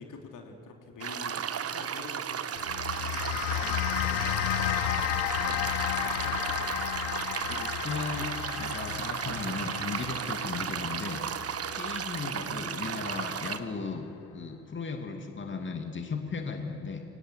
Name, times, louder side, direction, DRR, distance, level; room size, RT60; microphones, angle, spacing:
voice 1, 0.0-2.5 3.0-4.9 5.4-6.8, left 4 dB, 55° left, 2 dB, 3.0 m, -46 dB
sound 1, 1.0-13.6, right 8 dB, 40° right, 1.3 m, -34 dB
sound 2, 2.6-13.1, left 15 dB, 75° left, 0.9 m, -33 dB
voice 2, 7.5-11.2 11.7-14.1 14.3-17.0, left 4 dB, 30° left, 4 dB, 2.5 m, -36 dB
25.0 x 18.0 x 7.7 m, 2.7 s
figure-of-eight pair, 50°, 38 cm